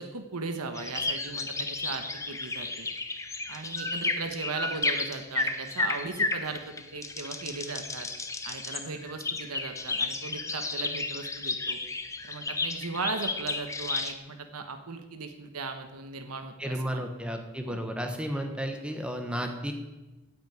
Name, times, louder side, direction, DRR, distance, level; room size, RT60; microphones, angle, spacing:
voice 1, 0.0-2.9 3.5-8.1 8.4-11.8 12.2-17.1 17.7-17.8, right 4 dB, 85° right, 6 dB, 1.3 m, -37 dB
sound 1, 0.7-14.1, left 3 dB, 15° left, 0.7 m, -32 dB
voice 2, 16.6-19.7, equal, 5° right, 4 dB, 1.1 m, -33 dB
9.5 x 8.5 x 9.4 m, 1.1 s
head